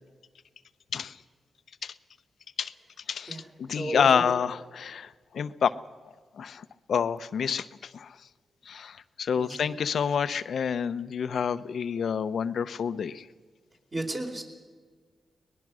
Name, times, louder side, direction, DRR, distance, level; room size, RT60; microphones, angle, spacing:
voice 1, 3.1-5.7 6.4-8.2 8.7-13.3, left 7 dB, 75° left, 14 dB, 0.7 m, -28 dB
voice 2, 3.7-4.2 9.3-9.6 13.9-14.4, right 2 dB, 35° right, 0 dB, 4.3 m, -33 dB
23.5 x 20.0 x 6.3 m, 1.5 s
cardioid pair, 70°, 0 cm